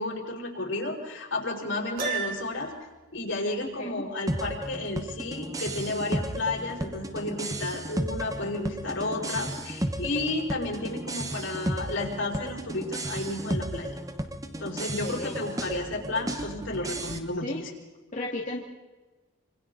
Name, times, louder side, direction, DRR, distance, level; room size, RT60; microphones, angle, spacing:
voice 1, 0.0-2.7 3.1-13.9 14.6-17.7, left 2 dB, 75° left, -2 dB, 5.6 m, -32 dB
Piano, 2.0-2.8, right 5 dB, 45° right, 3.7 m, -32 dB
sound 1, 4.3-17.2, right 1 dB, 15° right, 1.1 m, -34 dB
voice 2, 14.8-15.4 17.4-17.6 18.1-18.6, left 2 dB, 40° left, -3 dB, 2.4 m, -34 dB
28.0 x 26.0 x 4.0 m, 1.2 s
head